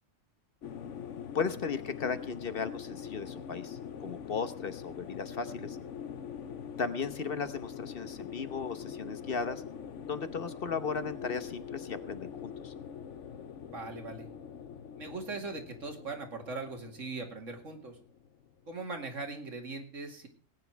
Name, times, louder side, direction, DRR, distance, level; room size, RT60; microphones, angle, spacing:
sound 1, 0.6-19.0, left 7 dB, 70° left, 1.1 m, -44 dB
voice 1, 1.3-5.8 6.8-9.6 10.1-12.7, left 5 dB, 50° left, 11 dB, 1.1 m, -36 dB
voice 2, 13.6-14.3 15.0-18.0 18.7-20.3, right 3 dB, 70° right, 4 dB, 2.7 m, -40 dB
18.5 x 9.5 x 4.6 m, 0.41 s
omnidirectional pair, 1.3 m